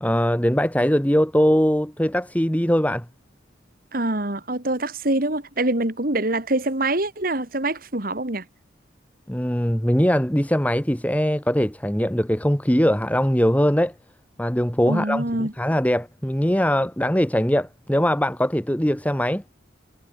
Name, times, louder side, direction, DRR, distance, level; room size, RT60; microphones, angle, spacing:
voice 1, 0.0-3.1 9.3-13.9 14.4-19.4, equal, 10° left, 1.8 m, -21 dB
voice 2, 3.9-8.4 14.9-15.5, right 2 dB, 50° right, 2.4 m, -25 dB
head